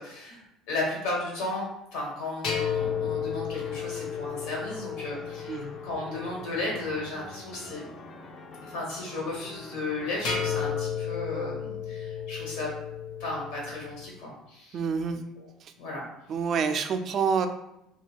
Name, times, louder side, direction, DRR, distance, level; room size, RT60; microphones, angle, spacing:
voice 1, 0.0-7.9 8.6-12.7 13.2-14.8 15.1-15.5 15.8-16.0, left 2 dB, 80° left, -3 dB, 1.1 m, -35 dB
sound 1, 2.4-6.8 10.2-14.1, left 7 dB, 65° left, 0.7 m, -33 dB
sound 2, 2.8-10.7, left 2 dB, 40° left, 0.3 m, -45 dB
voice 2, 14.7-15.2 15.6-15.7 16.3-17.5, right 6 dB, 45° right, 8 dB, 0.3 m, -27 dB
2.2 x 2.2 x 3.4 m, 0.83 s
supercardioid pair, 105°, 0 cm